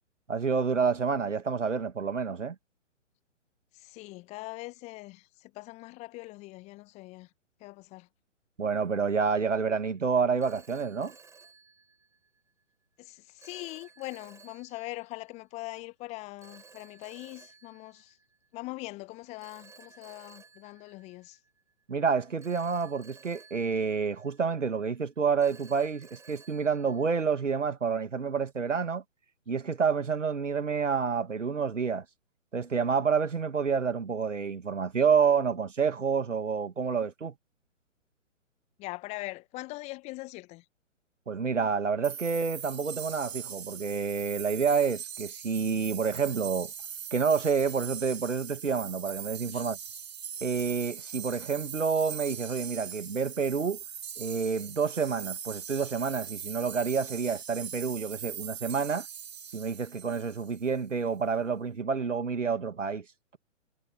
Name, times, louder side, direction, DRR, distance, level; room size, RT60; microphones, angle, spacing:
voice 1, 0.3-2.6 8.6-11.1 21.9-29.0 29.5-32.0 32.5-37.3 41.3-46.7 47.1-49.8 50.4-53.8 54.2-59.1 59.5-63.0, right 5 dB, 70° right, 2.0 m, -28 dB
voice 2, 3.7-7.3 7.6-8.1 13.0-18.2 18.5-21.4 38.8-40.6 49.5-49.7, left 21 dB, 15° left, 1.4 m, -42 dB
Telephone, 9.1-9.4 10.4-12.4 13.4-15.1 16.4-18.6 19.4-21.7 22.4-24.7 25.4-27.6, right 5 dB, 5° right, 5.2 m, -56 dB
sound 1, 42.0-60.7, right 8 dB, 55° right, 3.0 m, -41 dB
figure-of-eight pair, 130°, 38 cm